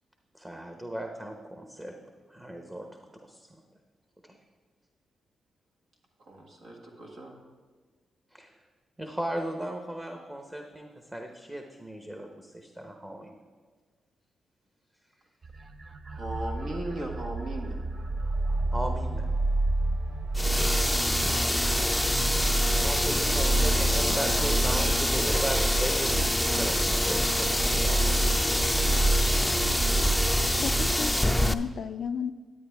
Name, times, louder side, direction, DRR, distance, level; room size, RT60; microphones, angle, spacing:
voice 1, 0.3-1.9 2.3-2.9 3.2-3.5 4.2-4.4 8.3-8.6 9.0-13.4 18.7-19.3 22.8-28.6, right 1 dB, 15° right, 3 dB, 0.9 m, -36 dB
voice 2, 6.2-7.3 16.0-17.8, right 1 dB, 75° right, -1 dB, 1.6 m, -37 dB
sound 1, 15.4-31.0, right 2 dB, 50° right, 0.6 m, -29 dB
sound 2, 20.3-31.5, left 1 dB, 5° left, 0.5 m, -26 dB
voice 3, 30.5-32.3, left 7 dB, 70° left, 9 dB, 0.3 m, -34 dB
11.0 x 9.2 x 3.5 m, 1.5 s
supercardioid pair, 55°, 0 cm